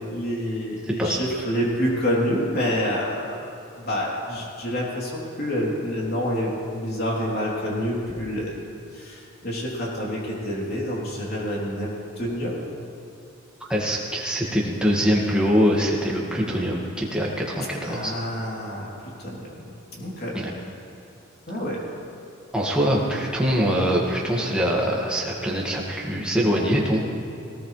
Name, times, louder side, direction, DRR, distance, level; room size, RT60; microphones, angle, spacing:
voice 1, 0.0-3.4 3.7-8.5 8.9-11.9 12.2-12.6 17.8-20.4 21.5-21.8, equal, 50° left, -4 dB, 3.4 m, -28 dB
voice 2, 13.6-18.1 20.3-20.5 22.5-27.0, equal, 5° right, -4 dB, 1.9 m, -23 dB
18.5 x 18.5 x 3.3 m, 2.7 s
head